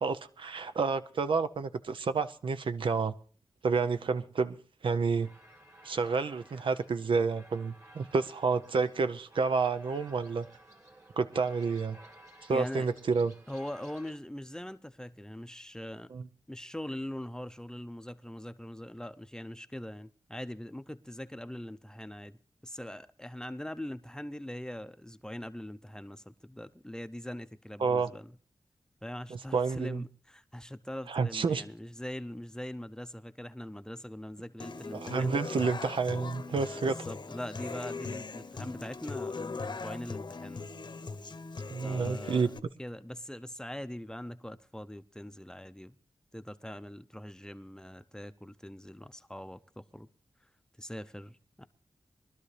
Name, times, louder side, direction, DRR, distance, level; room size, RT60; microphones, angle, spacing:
voice 1, 0.0-3.1 3.6-4.6 4.8-5.3 5.8-10.5 11.2-12.0 12.5-13.3 16.1-16.2 27.8-28.1 29.5-30.0 31.1-31.6 34.9-37.0 41.7-42.5, right 4 dB, 80° right, 0.7 m, -29 dB
sound 1, 5.1-14.2, right 1 dB, 35° right, 1.9 m, -56 dB
voice 2, 12.5-12.9 13.5-16.1 16.5-22.4 22.6-28.4 29.0-35.4 36.7-40.7 41.8-42.5 42.8-46.0 46.3-50.1 50.8-51.7, left 1 dB, 10° left, 0.6 m, -42 dB
Human voice / Acoustic guitar, 34.6-42.6, left 4 dB, 60° left, 0.9 m, -40 dB
22.5 x 12.0 x 3.3 m
wide cardioid pair, 65°, 9 cm